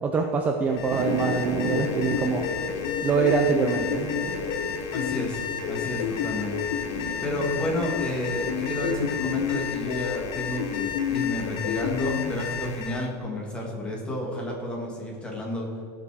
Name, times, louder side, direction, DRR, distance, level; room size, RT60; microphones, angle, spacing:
voice 1, 0.0-2.5 3.0-4.1, right 5 dB, 15° right, 3 dB, 0.6 m, -24 dB
Alarm, 0.6-13.1, left 8 dB, 40° left, 1.0 m, -35 dB
sound 1, 0.9-9.5, right 5 dB, 75° right, 1.1 m, -37 dB
sound 2, 1.1-12.3, left 8 dB, 80° left, 0.7 m, -31 dB
voice 2, 4.9-6.6 6.8-15.7, left 1 dB, 10° left, -1 dB, 1.9 m, -31 dB
16.5 x 5.9 x 4.9 m, 2.6 s
supercardioid pair, 175°, 9 cm